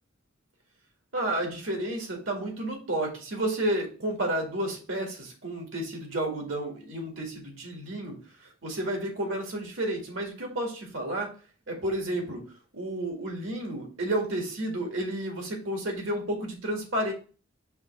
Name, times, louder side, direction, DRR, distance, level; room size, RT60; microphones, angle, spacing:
voice 1, 1.1-8.2 8.4-11.3 11.7-12.4 12.7-17.1, right 1 dB, 75° right, 1 dB, 1.9 m, -31 dB
5.6 x 3.1 x 5.5 m, 0.37 s
head